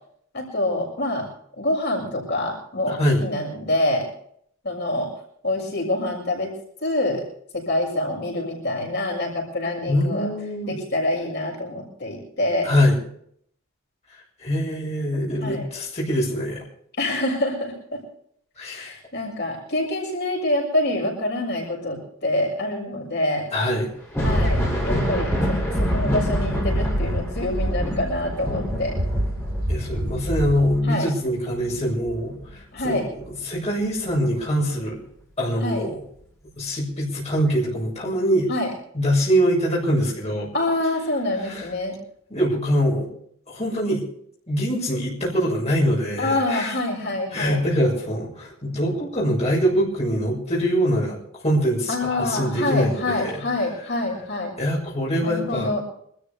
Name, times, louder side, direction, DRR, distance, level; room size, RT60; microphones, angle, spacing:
voice 1, 0.3-1.3 1.6-4.1 4.6-5.1 5.4-6.5 6.8-7.2 7.5-10.3 10.6-12.7 15.4-15.7 17.0-18.0 18.7-23.5 24.2-28.9 30.8-31.1 32.7-33.1 35.6-35.8 38.5-38.7 40.5-41.9 46.2-47.6 51.9-54.5 55.2-55.8, left 1 dB, 55° left, -1 dB, 6.7 m, -26 dB
voice 2, 2.9-3.2 9.9-10.8 12.6-13.0 14.4-16.6 18.6-18.9 23.5-23.9 29.7-32.3 32.8-35.0 35.4-36.0 36.6-38.5 38.9-40.5 41.4-41.7 42.3-43.1 43.5-44.0 44.5-46.7 47.3-51.2 51.4-53.4 54.6-55.7, equal, 30° left, -4 dB, 6.6 m, -23 dB
Thunder, 24.0-33.3 33.7-34.9 36.5-36.6 37.4-37.5, equal, 10° left, 7.3 m, -29 dB
sound 1, 24.2-28.4 28.7-30.8, equal, 75° right, 3.3 m, -26 dB
26.5 x 13.5 x 3.5 m, 0.65 s
head